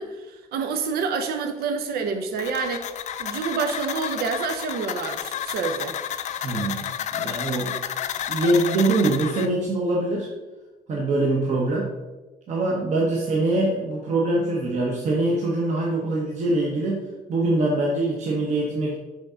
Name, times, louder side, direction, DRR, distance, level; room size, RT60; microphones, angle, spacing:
voice 1, 0.0-2.9 3.2-5.9, right 5 dB, 85° right, 6 dB, 0.7 m, -28 dB
sound 1, 2.4-9.5, left 10 dB, 50° left, 0.4 m, -31 dB
voice 2, 6.4-7.8 8.3-10.3 10.9-11.9 12.5-18.9, right 2 dB, 45° right, -2 dB, 1.0 m, -23 dB
6.4 x 3.6 x 5.5 m, 1.2 s
cardioid pair, 175°, 16 cm